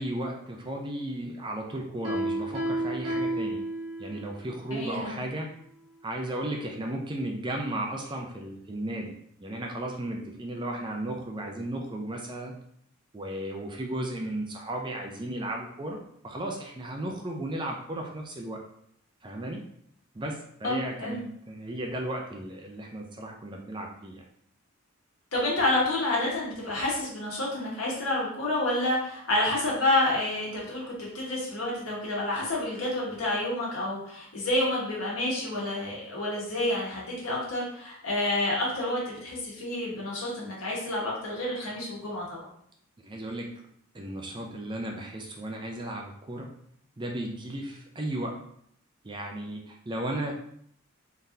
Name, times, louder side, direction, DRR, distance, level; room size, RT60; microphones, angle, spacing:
voice 1, 0.0-3.6 4.0-5.5 6.0-9.1 9.4-12.6 13.1-16.0 16.2-18.6 19.2-19.6 20.1-24.2 43.0-43.5 43.9-46.5 47.0-48.4 49.0-50.6, right 1 dB, 20° right, 1 dB, 0.4 m, -35 dB
Piano, 2.0-4.3, right 1 dB, 75° right, 1.4 m, -31 dB
voice 2, 4.7-5.2 20.6-21.2 25.3-42.5, left 1 dB, 70° left, -5 dB, 1.5 m, -29 dB
3.9 x 3.4 x 2.7 m, 0.69 s
head